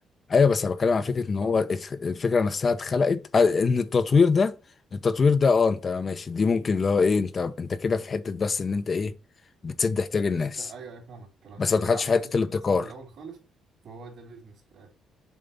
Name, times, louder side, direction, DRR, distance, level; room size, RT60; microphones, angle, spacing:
voice 1, 0.3-4.5 4.9-9.1 9.6-10.7 11.6-12.9, left 4 dB, 40° left, 0.8 m, -23 dB
voice 2, 10.1-13.4 13.8-14.9, right 4 dB, 65° right, 3.0 m, -45 dB
7.2 x 3.9 x 5.4 m
cardioid pair, 90°, 0 cm